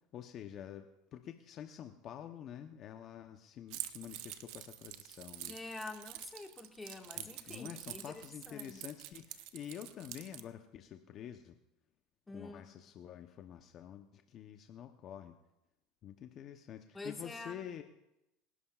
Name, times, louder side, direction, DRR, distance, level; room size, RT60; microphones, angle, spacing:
voice 1, 0.1-5.5 7.1-11.5 12.3-15.3 16.0-17.8, left 10 dB, 45° left, 7 dB, 0.8 m, -48 dB
Keys jangling, 3.7-10.4, right 14 dB, 70° right, 0.8 m, -47 dB
voice 2, 5.5-8.8 12.3-12.7 16.9-17.6, left 3 dB, 15° left, 3 dB, 1.7 m, -47 dB
24.5 x 11.5 x 2.4 m, 0.88 s
supercardioid pair, 105°, 0 cm